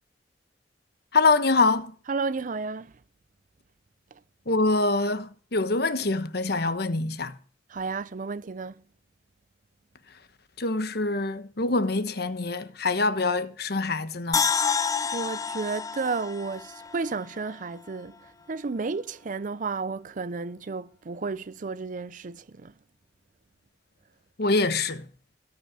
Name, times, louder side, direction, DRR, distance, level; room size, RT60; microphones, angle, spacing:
voice 1, 1.1-1.9 4.5-7.4 10.6-14.5 24.4-25.1, left 3 dB, 60° left, 1.1 m, -25 dB
voice 2, 2.1-3.0 4.1-4.2 7.7-8.8 15.0-22.7, right 4 dB, 45° right, 0.5 m, -32 dB
sound 1, 14.3-17.5 17.9-18.0, left 6 dB, 20° left, 0.6 m, -28 dB
17.0 x 5.9 x 7.6 m
head